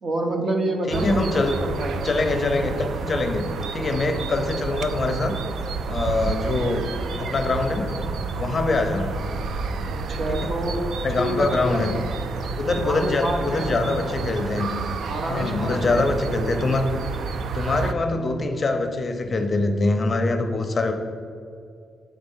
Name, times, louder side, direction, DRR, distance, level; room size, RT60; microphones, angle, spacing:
voice 1, 0.0-2.0 9.9-10.9 11.2-12.0 12.8-13.7 15.1-16.1, right 1 dB, 40° right, 2 dB, 1.0 m, -28 dB
voice 2, 0.9-1.5 2.0-3.5 3.7-5.3 5.9-6.9 7.2-7.9 8.4-9.1 10.3-10.5 11.0-11.9 12.6-14.7 15.3-16.9 17.5-20.9, left 3 dB, 30° left, 5 dB, 0.6 m, -24 dB
sound 1, 0.9-17.9, right 4 dB, 70° right, 0.4 m, -30 dB
sound 2, 6.3-13.8, equal, 5° right, 1.7 m, -40 dB
7.5 x 4.5 x 5.4 m, 2.4 s
wide cardioid pair, 160°, 0 cm